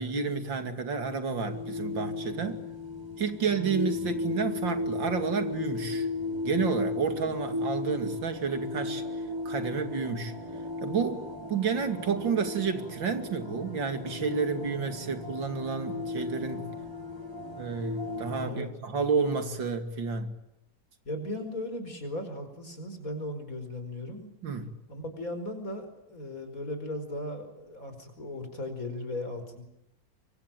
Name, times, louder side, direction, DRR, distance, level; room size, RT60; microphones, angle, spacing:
voice 1, 0.0-2.6 3.2-6.1 6.4-9.0 9.4-10.3 10.8-11.2 11.5-16.6 17.5-20.3 24.4-24.7, right 5 dB, 80° right, 3.1 m, -30 dB
sound 1, 1.4-18.5, left 2 dB, 15° right, 4.2 m, -35 dB
voice 2, 18.4-18.7 21.0-24.3 24.9-29.6, left 1 dB, 45° left, 5.5 m, -37 dB
25.5 x 24.5 x 9.1 m
omnidirectional pair, 2.0 m